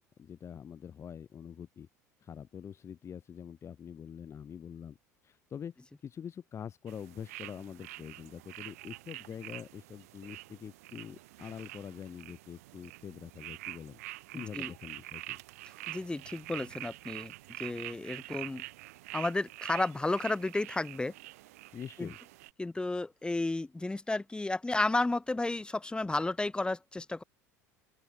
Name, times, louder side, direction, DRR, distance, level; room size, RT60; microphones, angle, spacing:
voice 1, 0.2-1.9 2.2-5.0 5.2-5.7 6.0-14.0 14.3-15.4 21.7-22.2, left 8 dB, 30° left, 4.3 m, -45 dB
sound 1, 6.9-22.5, right 19 dB, 60° right, 2.7 m, -46 dB
voice 2, 14.3-14.7 15.9-18.6 19.1-21.1 22.0-22.1 22.6-27.2, left 2 dB, 10° left, 6.4 m, -32 dB
open air
figure-of-eight pair, 70°, 9 cm